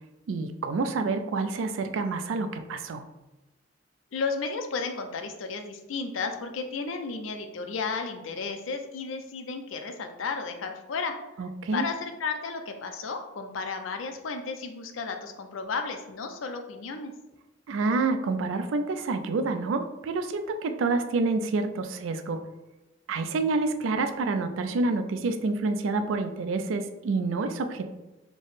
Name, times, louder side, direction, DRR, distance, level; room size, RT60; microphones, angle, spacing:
voice 1, 0.3-3.0 11.4-11.9 17.7-22.4 23.1-27.9, right 3 dB, 80° right, 8 dB, 0.4 m, -28 dB
voice 2, 4.1-11.2 11.7-17.1, left 4 dB, 85° left, 6 dB, 0.5 m, -33 dB
3.5 x 2.0 x 3.9 m, 1.0 s
head